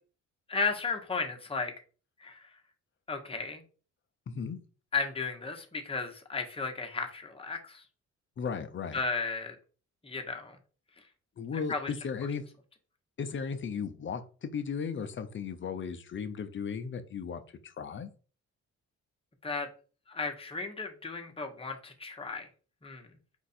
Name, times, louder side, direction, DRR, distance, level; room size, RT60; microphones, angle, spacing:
voice 1, 0.5-1.7 2.2-2.5 3.1-3.6 4.9-7.8 8.9-9.6 10.0-10.6 11.7-11.9 19.4-19.7 20.1-22.5 22.8-23.1, left 4 dB, 20° left, 3 dB, 1.0 m, -34 dB
voice 2, 4.3-4.6 8.4-9.0 11.4-12.4 13.2-18.1, left 6 dB, 40° left, 10 dB, 0.6 m, -36 dB
4.6 x 2.5 x 4.3 m, 0.38 s
cardioid pair, 90°, 30 cm